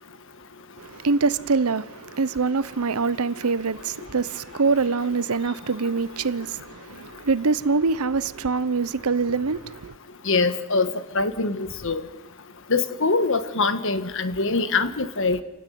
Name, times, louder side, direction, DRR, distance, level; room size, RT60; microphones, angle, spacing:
voice 1, 0.8-9.9, right 4 dB, 75° right, 0.8 m, -24 dB
voice 2, 10.3-10.9 11.1-12.0 12.7-15.4, left 3 dB, 60° left, 1.5 m, -23 dB
29.0 x 15.5 x 9.4 m
head